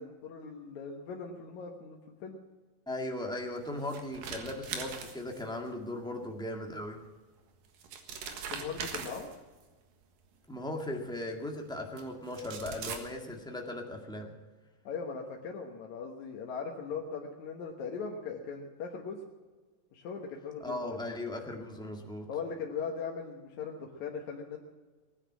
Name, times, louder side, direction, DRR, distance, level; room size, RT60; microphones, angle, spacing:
voice 1, 0.0-2.4 8.5-9.3 14.8-19.2 19.9-20.8 22.3-24.6, left 5 dB, 65° left, 0 dB, 2.5 m, -39 dB
voice 2, 2.9-7.0 10.5-14.3 20.6-22.3, left 1 dB, 5° left, 1 dB, 0.8 m, -38 dB
sound 1, 3.6-5.7 7.1-7.2 7.7-9.6 10.8-10.9 12.0-12.1 12.3-13.0, right 6 dB, 85° right, 3.3 m, -40 dB
19.5 x 9.9 x 7.5 m, 1.3 s
omnidirectional pair, 4.0 m